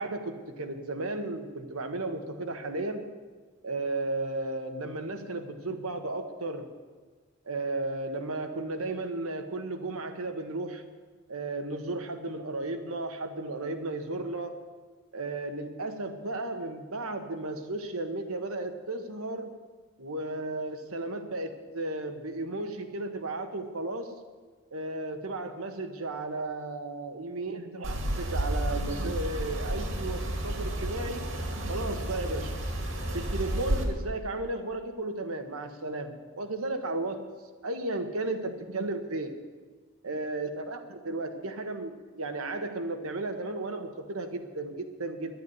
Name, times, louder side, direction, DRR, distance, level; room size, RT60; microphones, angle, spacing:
voice 1, 0.0-3.1 3.6-6.7 7.5-10.8 11.3-14.5 15.1-19.5 20.0-24.1 24.7-31.2 31.7-32.6 33.1-37.3 37.6-39.3 40.0-45.3, right 2 dB, 90° right, 6 dB, 1.3 m, -34 dB
sound 1, 27.8-33.8, right 1 dB, 70° right, 2.1 m, -31 dB
11.0 x 8.4 x 9.7 m, 1.4 s
head